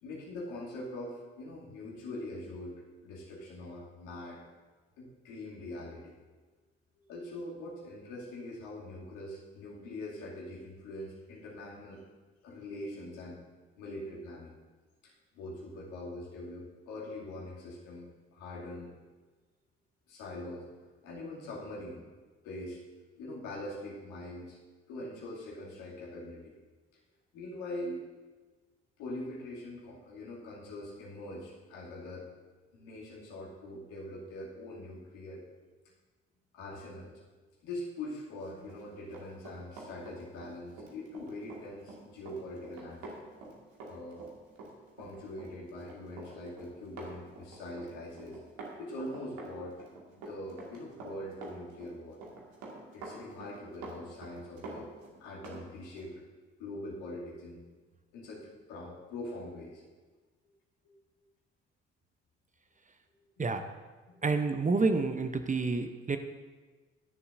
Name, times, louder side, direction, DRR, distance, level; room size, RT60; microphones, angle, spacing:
voice 1, 0.0-4.4 5.0-6.2 7.1-12.0 12.4-13.4 13.8-14.5 15.0-18.9 20.1-20.7 21.0-22.0 22.4-22.8 23.2-24.6 24.9-26.5 27.3-28.1 29.0-32.3 32.7-35.4 36.5-37.2 37.6-43.2 43.9-44.2 45.0-48.4 48.8-49.8 50.1-52.2 52.9-54.9 55.2-56.1 56.6-57.6 58.1-59.8 63.3-63.4, left 1 dB, 70° left, -5 dB, 2.6 m, -43 dB
Run, 38.6-55.6 56.0-56.1, right 2 dB, 70° right, 2.0 m, -47 dB
voice 2, 64.2-66.2, right 3 dB, 25° right, 8 dB, 0.8 m, -28 dB
20.5 x 6.9 x 2.6 m, 1.3 s
hypercardioid pair, 45°, 32 cm